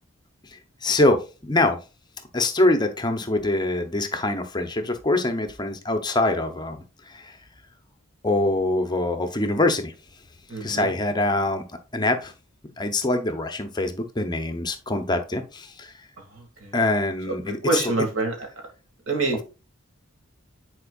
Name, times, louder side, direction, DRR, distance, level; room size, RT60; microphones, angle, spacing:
voice 1, 0.5-1.8 2.3-7.4 8.2-9.9 10.6-11.7 11.9-12.3 12.8-15.9 16.7-17.8, left 2 dB, 20° left, 0.7 m, -24 dB
voice 2, 10.5-10.9 16.4-16.7 17.5-18.3 19.1-19.4, right 3 dB, 90° right, 2.1 m, -26 dB
9.6 x 4.4 x 2.4 m
head